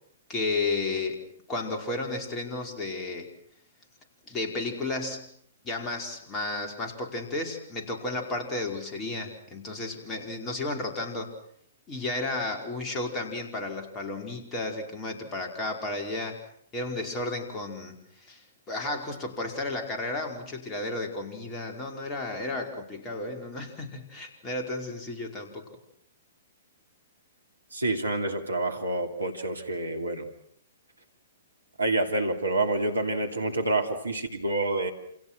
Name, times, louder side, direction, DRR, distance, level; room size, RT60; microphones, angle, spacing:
voice 1, 0.3-3.3 4.3-5.3 5.6-11.3 11.9-16.4 16.7-18.0 18.2-18.4 18.7-25.7, left 2 dB, 20° left, 3 dB, 5.0 m, -33 dB
voice 2, 27.7-30.3 31.8-34.9, right 2 dB, 80° right, 6 dB, 3.0 m, -28 dB
28.5 x 27.5 x 6.2 m, 0.66 s
figure-of-eight pair, 115°, 0 cm